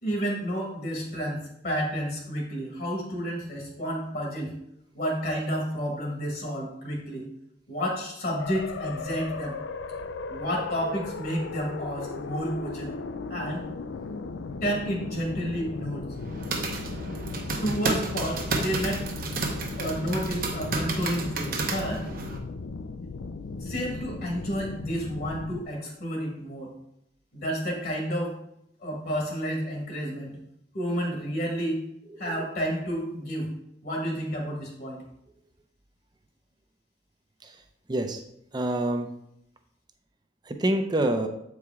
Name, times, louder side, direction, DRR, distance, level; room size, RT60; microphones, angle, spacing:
voice 1, 0.0-4.6 4.9-7.3 7.7-9.6 10.3-12.9 13.3-13.7 14.6-16.0 17.6-19.1 19.8-22.0 23.6-26.7 27.3-28.3 28.8-30.3 30.7-31.8 32.2-33.5 33.8-35.0, equal, 50° left, 0 dB, 1.6 m, -30 dB
sound 1, 8.4-25.6, left 4 dB, 75° left, 0.4 m, -37 dB
sound 2, 16.1-22.4, right 3 dB, 50° right, 0.9 m, -31 dB
voice 2, 37.9-38.2 38.5-39.1 40.4-41.3, right 1 dB, 25° right, 6 dB, 0.6 m, -27 dB
8.0 x 4.8 x 3.6 m, 0.77 s
head